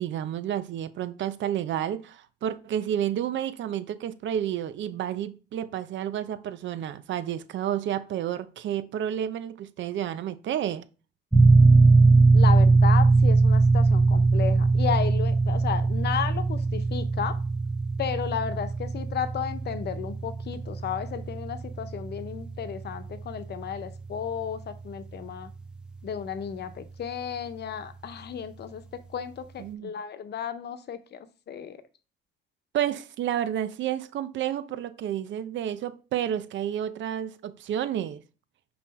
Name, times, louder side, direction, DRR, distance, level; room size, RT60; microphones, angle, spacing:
voice 1, 0.0-10.9 29.6-29.9 32.7-38.2, right 10 dB, 70° right, 0.6 m, -30 dB
sound 1, 11.3-25.7, right 3 dB, 5° right, 0.8 m, -21 dB
voice 2, 12.3-17.4 18.0-25.5 26.0-28.8 29.1-31.2 31.5-31.8, left 8 dB, 55° left, 0.9 m, -33 dB
5.5 x 4.3 x 4.2 m
cardioid pair, 90°, 20 cm